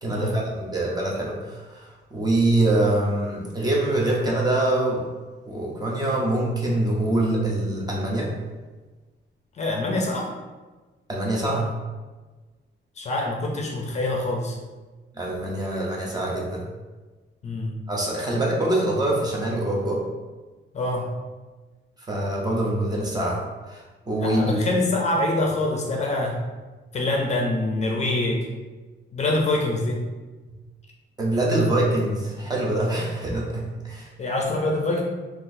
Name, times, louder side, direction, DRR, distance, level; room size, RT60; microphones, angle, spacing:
voice 1, 0.0-5.0 5.5-8.3 11.1-11.7 15.2-16.7 17.9-20.0 22.1-23.4 23.7-24.6 31.2-34.1, right 1 dB, 20° right, -3 dB, 0.5 m, -24 dB
voice 2, 9.6-10.3 13.0-14.5 17.4-17.8 20.7-21.1 24.2-26.4 26.9-28.5 29.1-30.1 34.2-35.0, left 2 dB, 35° left, 0 dB, 0.4 m, -25 dB
3.8 x 2.4 x 2.5 m, 1.3 s
wide cardioid pair, 175°, 19 cm